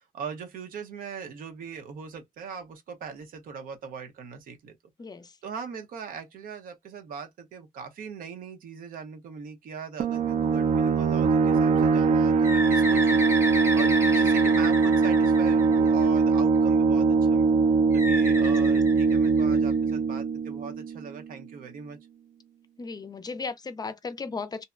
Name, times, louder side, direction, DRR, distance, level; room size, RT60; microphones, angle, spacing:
voice 1, 0.0-4.8 5.4-13.3 13.7-17.5 17.9-22.0, right 6 dB, 90° right, 0.7 m, -40 dB
voice 2, 5.0-5.4 14.2-14.3 18.4-18.5 22.8-24.6, left 4 dB, 30° left, 0.4 m, -36 dB
sound 1, 10.0-21.3, right 4 dB, 60° right, 0.5 m, -22 dB
Bird, 12.4-16.2 17.9-19.7, equal, 20° right, 0.8 m, -31 dB
2.7 x 2.1 x 2.3 m
cardioid pair, 105°, 14 cm